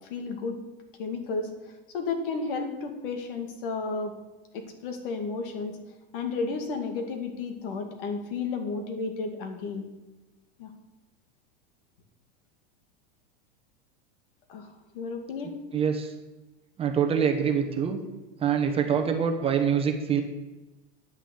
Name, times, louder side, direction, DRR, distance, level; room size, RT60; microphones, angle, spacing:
voice 1, 0.1-0.6 1.0-1.5 1.9-4.1 4.5-5.8 6.1-9.9 10.6-10.7 14.5-14.7 14.9-15.5, left 4 dB, 65° left, 5 dB, 2.3 m, -32 dB
voice 2, 15.7-16.1 16.8-18.0 18.4-20.2, right 7 dB, 20° right, 4 dB, 1.0 m, -25 dB
9.6 x 6.0 x 8.5 m, 1.1 s
supercardioid pair, 155°, 29 cm